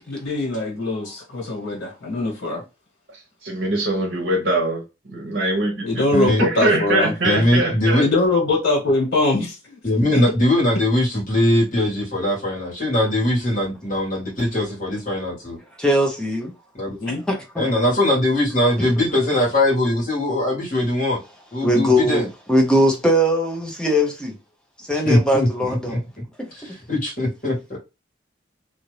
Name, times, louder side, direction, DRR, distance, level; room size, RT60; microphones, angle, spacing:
voice 1, 0.1-2.6 5.8-7.1 8.0-9.8 10.1-10.2 17.0-17.2, left 2 dB, 90° left, 1.5 m, -22 dB
voice 2, 3.4-4.8 5.1-6.0 6.4-8.0, right 2 dB, 55° right, 1.0 m, -22 dB
voice 3, 6.1-6.4 7.2-8.0 9.8-15.6 16.7-17.0 17.6-21.2 21.5-22.3 25.0-26.0 26.5-27.8, left 1 dB, 45° left, 1.5 m, -21 dB
voice 4, 15.8-16.5 17.1-17.7 18.8-19.0 21.6-24.4 24.8-26.0 26.4-26.5, equal, 5° left, 0.6 m, -20 dB
2.7 x 2.5 x 3.1 m
head